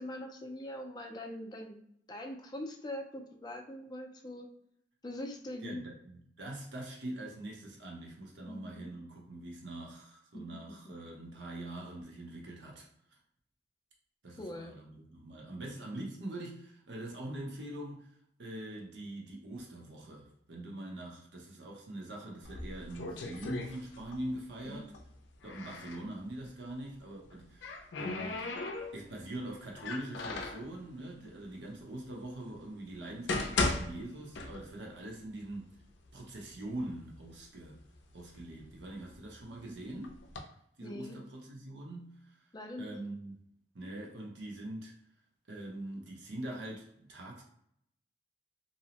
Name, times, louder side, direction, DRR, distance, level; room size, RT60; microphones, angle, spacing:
voice 1, 0.0-1.8 2.1-4.5 5.0-5.8 8.5-8.9 10.3-10.6 10.8-10.9 14.4-14.7 24.6-24.8 40.8-41.2 42.5-43.0, left 1 dB, 25° left, 0.4 m, -42 dB
voice 2, 5.6-12.9 14.2-18.1 18.4-24.9 25.4-28.6 28.9-35.7 36.1-37.8 38.1-40.2 40.8-42.4 42.8-43.4 43.7-44.9 45.5-47.4, right 1 dB, 80° right, 0.7 m, -43 dB
sound 1, 22.4-24.3 24.6-26.0 27.2-29.2 29.8-30.7 31.5-31.6 32.2-32.3 33.0-34.9 35.3-35.4 36.1-36.2 36.5-37.2 37.7-39.4 40.0-40.4, left 3 dB, 85° left, 0.4 m, -37 dB
2.7 x 2.0 x 2.8 m
head